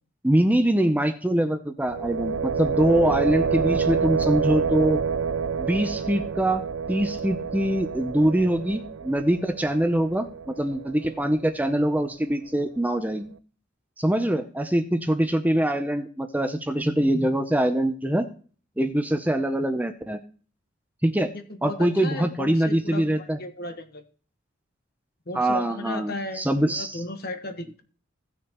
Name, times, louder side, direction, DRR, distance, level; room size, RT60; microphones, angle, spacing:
voice 1, 0.2-5.0 5.6-6.6 6.9-13.3 14.0-18.2 18.8-20.2 21.0-21.3 21.6-23.4 25.3-27.0, right 1 dB, 10° right, 7 dB, 0.6 m, -23 dB
sound 1, 1.8-11.7, right 6 dB, 75° right, 0.4 m, -28 dB
voice 2, 21.3-24.0 25.3-27.8, left 2 dB, 50° left, 7 dB, 1.3 m, -35 dB
16.5 x 6.3 x 3.0 m, 0.41 s
head